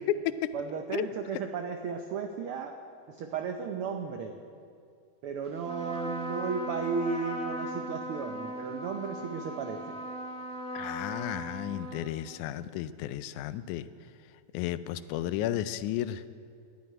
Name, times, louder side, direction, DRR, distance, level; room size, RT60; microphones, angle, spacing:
voice 1, 0.5-2.8 3.1-4.4 5.2-10.0, right 5 dB, 90° right, 5 dB, 1.2 m, -34 dB
Trumpet, 5.6-12.4, right 1 dB, 5° left, 0.6 m, -38 dB
voice 2, 10.7-13.9 14.5-16.2, left 12 dB, 90° left, 14 dB, 2.0 m, -33 dB
12.5 x 9.5 x 9.8 m, 2.3 s
omnidirectional pair, 3.4 m